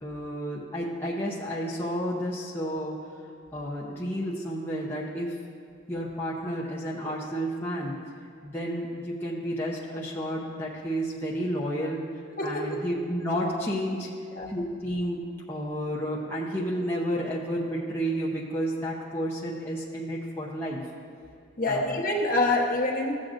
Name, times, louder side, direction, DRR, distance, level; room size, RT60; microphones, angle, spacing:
voice 1, 0.0-3.0 3.5-5.3 5.9-7.9 8.4-12.1 12.4-14.1 14.5-20.8 21.7-22.0, equal, 10° left, -5 dB, 0.7 m, -31 dB
voice 2, 12.4-12.8 14.4-14.6 21.6-23.2, left 2 dB, 45° left, -1 dB, 1.1 m, -26 dB
14.0 x 7.6 x 2.5 m, 2.5 s
head